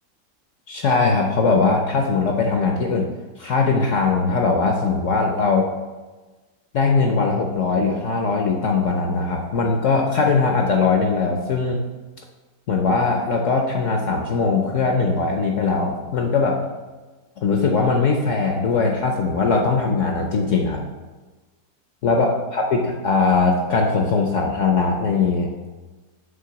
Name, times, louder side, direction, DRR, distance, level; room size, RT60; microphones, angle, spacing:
voice 1, 0.7-3.1 3.4-5.7 6.7-11.8 12.7-16.6 17.4-20.8 22.0-25.5, left 4 dB, 65° left, 2 dB, 0.8 m, -20 dB
7.5 x 3.3 x 5.7 m, 1.3 s
omnidirectional pair, 1.8 m